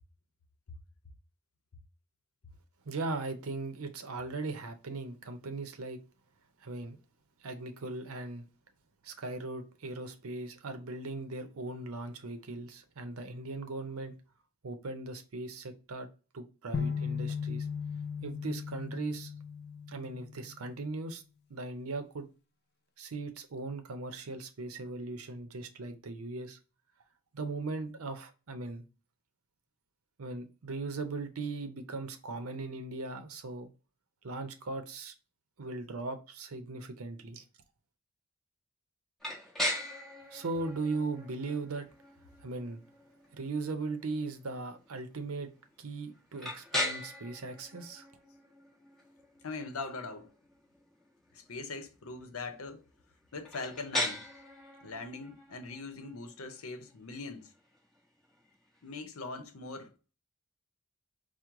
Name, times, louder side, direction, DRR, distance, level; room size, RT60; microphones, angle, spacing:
voice 1, 2.9-6.0 6.6-7.0 7.4-8.4 9.0-14.1 14.6-16.1 16.3-17.7 18.2-19.3 19.9-21.2 21.5-22.3 23.0-26.6 27.3-28.8 30.2-33.7 34.2-35.1 35.6-37.4 40.3-41.9 42.4-42.8 43.3-45.5 45.8-48.1, right 3 dB, 80° right, 0.6 m, -38 dB
sound 1, 16.7-20.7, left 6 dB, 50° left, 0.5 m, -37 dB
sound 2, 39.2-59.0, left 1 dB, ahead, 1.2 m, -41 dB
voice 2, 49.4-50.3 51.3-52.8 53.3-54.2 54.8-57.5 58.8-59.9, left 3 dB, 80° left, 0.7 m, -41 dB
4.5 x 2.1 x 3.6 m
head